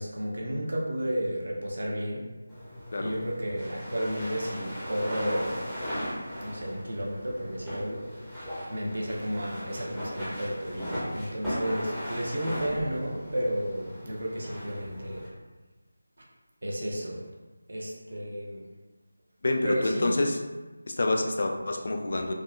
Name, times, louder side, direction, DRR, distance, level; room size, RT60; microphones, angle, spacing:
voice 1, 0.0-2.3 3.0-5.7 6.4-8.2 8.7-15.3 16.6-17.3 17.7-18.7 19.6-20.2, equal, 60° right, -2 dB, 0.7 m, -32 dB
sound 1, 2.5-15.3, equal, ahead, 0.6 m, -37 dB
voice 2, 19.4-20.4 20.9-22.3, left 2 dB, 50° left, 3 dB, 0.3 m, -27 dB
3.5 x 2.1 x 2.4 m, 1.2 s
figure-of-eight pair, 170°, 0 cm